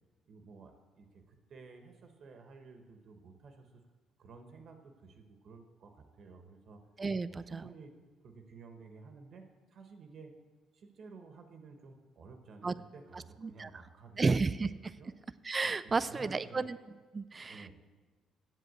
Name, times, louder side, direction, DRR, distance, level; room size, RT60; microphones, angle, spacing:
voice 1, 0.3-3.8 4.2-6.9 7.3-7.9 8.2-10.3 10.7-14.4 15.0-15.1 15.8-16.7 17.5-17.7, right 4 dB, 55° right, 5 dB, 1.1 m, -53 dB
voice 2, 7.0-7.6 12.6-12.7 13.4-13.7 14.2-14.9 15.4-16.8 17.1-17.7, right 4 dB, 30° right, 14 dB, 0.3 m, -32 dB
8.0 x 7.5 x 8.0 m, 1.4 s
cardioid pair, 90°, 0 cm